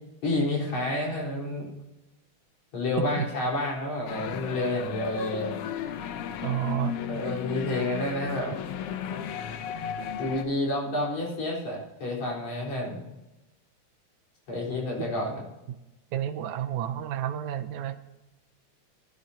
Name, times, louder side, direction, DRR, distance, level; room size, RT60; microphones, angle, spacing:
voice 1, 0.2-1.7 2.7-5.5 7.0-8.5 10.2-13.0 14.5-15.4, left 1 dB, 60° left, -4 dB, 5.5 m, -29 dB
sound 1, 4.1-10.4, left 8 dB, 90° left, 1.2 m, -34 dB
voice 2, 6.4-7.0 15.0-15.1 15.7-15.8 16.1-18.0, right 10 dB, 75° right, 7 dB, 2.0 m, -30 dB
20.0 x 11.0 x 2.8 m, 1.0 s
omnidirectional pair, 3.7 m